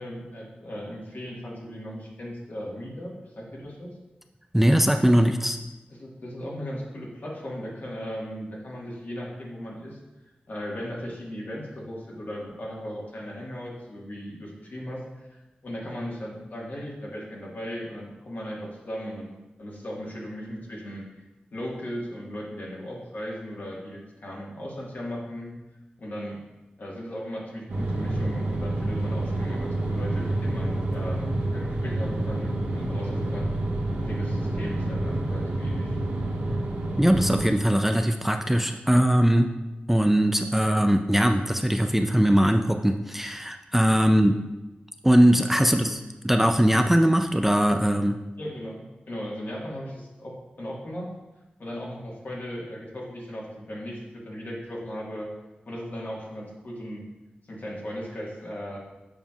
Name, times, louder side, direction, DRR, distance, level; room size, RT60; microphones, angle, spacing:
voice 1, 0.0-3.9 6.0-19.3 19.6-21.2 21.5-25.5 26.0-26.4 26.8-33.5 34.0-36.0 44.0-44.1 45.7-45.9 48.4-51.1 51.6-55.3 55.7-57.0 57.5-58.8, equal, 65° left, -4 dB, 1.7 m, -37 dB
voice 2, 4.5-5.6 37.0-39.5 39.9-44.3 45.0-46.0 46.2-48.2, equal, 5° right, 5 dB, 0.4 m, -20 dB
sound 1, 27.7-37.4, right 1 dB, 85° right, 1.2 m, -28 dB
7.1 x 5.5 x 2.4 m, 1.0 s
cardioid pair, 45°, 3 cm